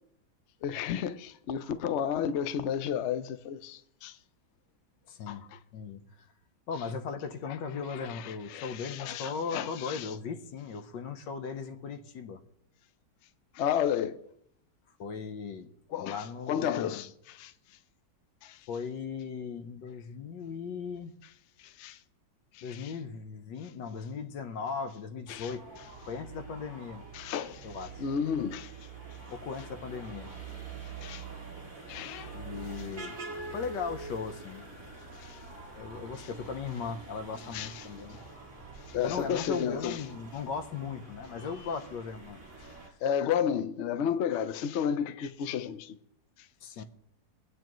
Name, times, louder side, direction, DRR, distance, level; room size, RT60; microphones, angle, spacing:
voice 1, 0.6-4.2 5.3-5.6 7.9-10.1 13.5-14.2 15.9-17.5 18.4-18.6 21.6-22.0 22.5-22.9 25.3-25.5 27.1-27.7 28.0-28.7 31.0-31.3 31.9-32.3 35.2-35.4 36.2-36.3 37.5-37.9 38.9-40.0 43.0-46.0 46.8-46.9, left 8 dB, 60° left, 0.7 m, -32 dB
voice 2, 5.1-5.4 5.7-6.0 6.7-12.4 15.0-15.7 16.0-17.0 18.7-21.1 22.6-25.6 26.1-27.0 27.6-28.0 29.3-30.3 32.3-33.1 33.5-34.6 35.8-38.2 39.0-42.5 46.6-46.8, left 5 dB, 85° left, 1.6 m, -38 dB
sound 1, 25.3-42.9, right 3 dB, 25° right, 2.7 m, -45 dB
23.5 x 8.9 x 3.1 m
omnidirectional pair, 1.9 m